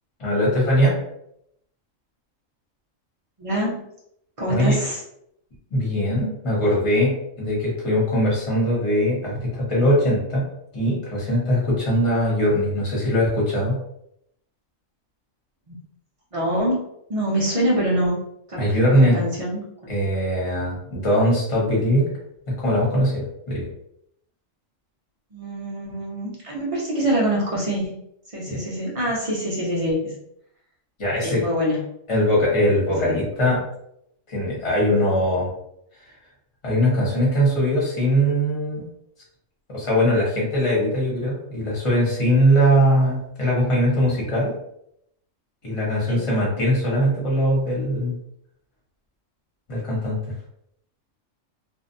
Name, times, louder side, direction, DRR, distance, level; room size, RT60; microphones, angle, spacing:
voice 1, 0.2-0.9 4.5-4.8 5.7-10.5 10.7-13.8 18.6-19.2 19.9-22.1 22.5-23.7 28.5-28.6 31.0-31.4 32.1-33.6 34.3-35.5 36.6-38.8 39.7-44.5 45.6-48.1 49.7-50.3, equal, 25° left, -5 dB, 0.8 m, -21 dB
voice 2, 3.4-3.9 4.4-5.0 15.7-15.8 16.3-16.8 17.1-18.2 18.5-19.9 25.3-28.0 28.3-30.2 31.2-31.8 33.0-33.2 46.1-46.3, equal, 45° right, -5 dB, 0.4 m, -25 dB
2.5 x 2.1 x 2.5 m, 0.75 s
omnidirectional pair, 1.4 m